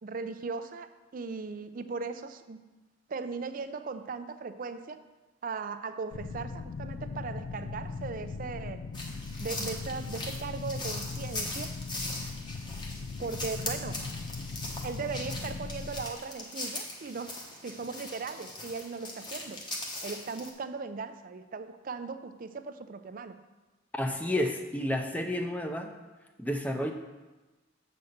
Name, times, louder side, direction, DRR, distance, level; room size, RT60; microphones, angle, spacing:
voice 1, 0.0-2.6 3.1-5.0 5.4-8.8 9.4-11.7 13.2-14.0 14.8-19.7 20.0-23.4, right 4 dB, 45° right, 10 dB, 0.4 m, -38 dB
sound 1, 6.1-16.1, left 4 dB, 65° left, 0.4 m, -39 dB
sound 2, 8.9-20.5, left 2 dB, 25° left, 1.1 m, -40 dB
voice 2, 23.9-25.9 26.4-26.9, left 1 dB, 10° left, 4 dB, 0.6 m, -30 dB
7.8 x 4.2 x 6.5 m, 1.2 s
head